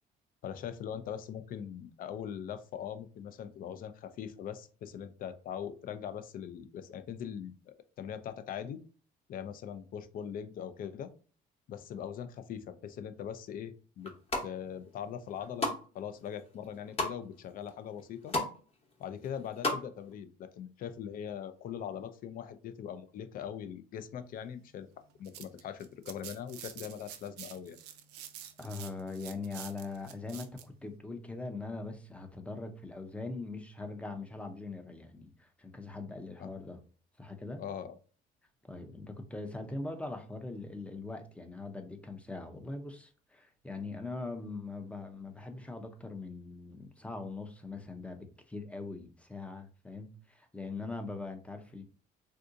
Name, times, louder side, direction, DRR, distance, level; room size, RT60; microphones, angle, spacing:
voice 1, 0.4-8.8 9.3-11.1 11.7-14.1 14.4-18.4 19.0-24.9 25.2-27.8 36.4-36.5 37.6-38.0, left 8 dB, 55° left, 0.5 m, -41 dB
sound 1, 14.0-14.5 15.0-15.8 16.2-17.1 17.7-17.8 18.0-18.5 18.8-19.8 20.1-20.2, left 2 dB, 35° left, 0.9 m, -33 dB
sound 2, 25.0-30.7, right 10 dB, 80° right, 0.5 m, -48 dB
voice 2, 28.6-36.8 37.2-37.6 38.7-51.8, left 3 dB, 5° left, 0.5 m, -41 dB
3.6 x 2.7 x 2.5 m
cardioid pair, 110°, 17 cm